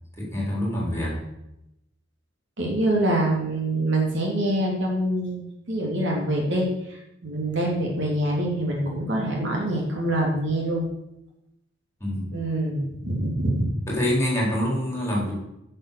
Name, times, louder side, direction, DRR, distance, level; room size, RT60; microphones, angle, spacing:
voice 1, 0.2-1.2 12.0-12.3 13.9-15.3, left 1 dB, 15° left, -3 dB, 4.1 m, -25 dB
voice 2, 2.6-10.8 12.3-13.7, right 1 dB, 65° right, -1 dB, 3.0 m, -25 dB
9.0 x 6.5 x 6.8 m, 0.86 s
head